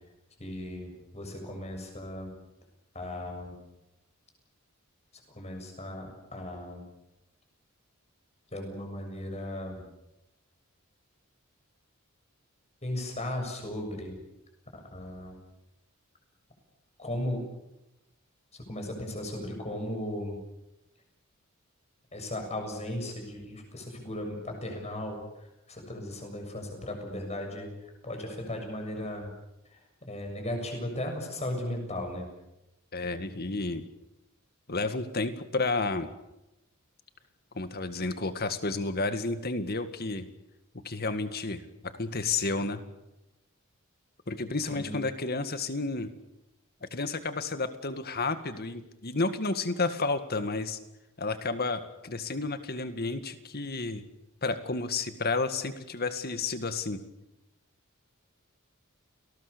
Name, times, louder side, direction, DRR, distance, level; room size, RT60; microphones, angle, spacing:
voice 1, 0.4-2.3 2.9-3.6 5.3-6.8 8.5-9.8 12.8-14.2 14.7-15.4 17.0-17.4 18.7-20.4 22.1-29.3 29.7-32.3 44.7-45.0, left 1 dB, 30° left, 4 dB, 7.1 m, -36 dB
voice 2, 32.9-33.9 34.7-36.1 37.5-40.3 40.7-42.8 44.3-46.1 46.8-50.8 51.2-54.0 54.4-57.0, left 3 dB, 50° left, 10 dB, 2.0 m, -31 dB
29.5 x 19.5 x 6.9 m, 0.93 s
head